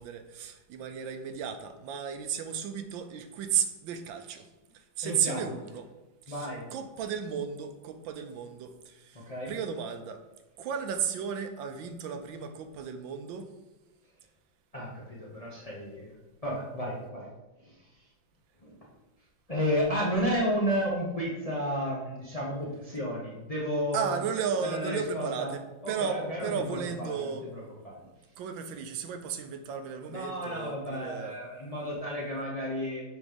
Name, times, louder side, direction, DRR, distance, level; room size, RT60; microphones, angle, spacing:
voice 1, 0.0-4.5 4.7-5.9 6.3-10.2 10.6-13.5 23.9-25.6 25.9-27.4 28.0-31.4, right 7 dB, 80° right, 7 dB, 1.3 m, -34 dB
voice 2, 5.0-5.5 6.3-6.7 9.1-9.5 14.7-16.1 16.4-17.3 17.6-17.9 18.6-18.9 19.5-24.2 24.6-25.5 25.8-28.0 30.1-33.0, equal, 30° left, -4 dB, 0.8 m, -32 dB
6.3 x 3.1 x 5.1 m, 1.1 s
omnidirectional pair, 2.1 m